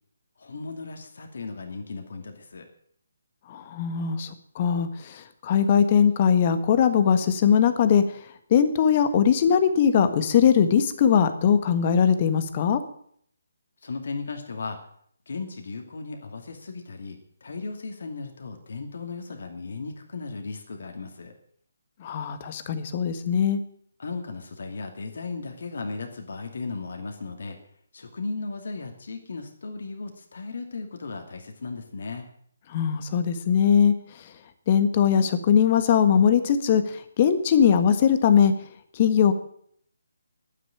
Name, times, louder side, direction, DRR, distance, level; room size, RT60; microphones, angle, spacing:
voice 1, 0.4-2.7 13.8-14.8 15.3-21.3 24.0-27.6 27.9-32.3, left 4 dB, 60° left, 4 dB, 2.5 m, -36 dB
voice 2, 3.5-8.0 8.5-12.8 22.0-23.6 32.7-33.9 34.7-38.5 38.9-39.3, left 8 dB, 35° left, 10 dB, 1.6 m, -20 dB
11.0 x 10.0 x 9.1 m, 0.64 s
figure-of-eight pair, 145°, 0 cm